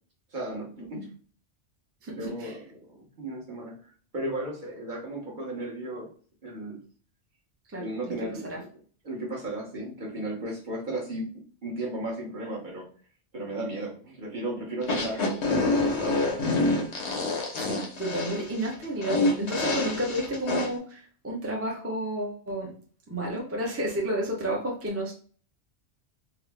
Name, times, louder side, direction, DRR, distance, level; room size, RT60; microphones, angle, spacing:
voice 1, 0.3-1.1 2.1-6.1 6.4-6.9 7.8-8.6 9.0-12.9 13.3-16.3, right 1 dB, 45° right, -3 dB, 1.1 m, -35 dB
voice 2, 2.0-2.5 7.7-8.1 8.5-8.6 17.6-22.7 23.1-25.1, right 1 dB, 15° right, -2 dB, 0.6 m, -31 dB
sound 1, 14.8-20.7, left 2 dB, 75° left, 1.1 m, -27 dB
3.7 x 2.0 x 3.3 m, 0.44 s
omnidirectional pair, 1.2 m